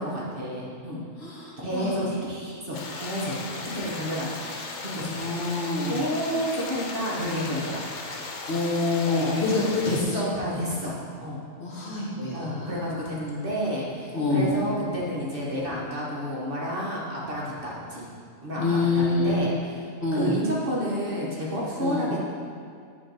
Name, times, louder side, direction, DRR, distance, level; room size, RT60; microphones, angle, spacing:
voice 1, 0.0-1.0 1.6-3.4 3.7-5.2 5.6-7.9 9.0-9.4 10.3-11.4 12.3-18.1 18.4-19.5 20.1-22.2, equal, 45° right, -5 dB, 1.2 m, -30 dB
voice 2, 1.2-2.0 5.1-6.0 8.5-10.3 11.6-13.0 14.1-14.5 18.6-19.3 20.0-20.3 21.8-22.0, left 3 dB, 55° left, -4 dB, 1.5 m, -26 dB
sound 1, 2.7-10.0, left 3 dB, 80° left, 1.1 m, -36 dB
9.1 x 3.2 x 5.2 m, 2.2 s
omnidirectional pair, 1.4 m